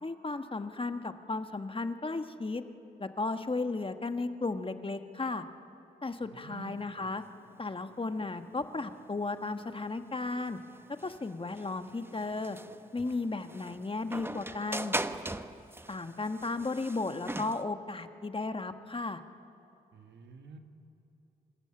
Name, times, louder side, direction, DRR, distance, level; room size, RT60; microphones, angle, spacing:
voice 1, 0.0-2.6 3.0-5.4 6.0-7.2 7.6-10.6 11.0-12.6 12.9-14.9 15.9-19.2, left 3 dB, 30° left, 8 dB, 1.4 m, -35 dB
voice 2, 6.2-7.1 19.9-20.6, right 4 dB, 75° right, 6 dB, 1.7 m, -49 dB
sound 1, 6.8-17.6, right 1 dB, 10° right, 1.0 m, -41 dB
26.0 x 14.0 x 8.8 m, 2.7 s
supercardioid pair, 45°, 18 cm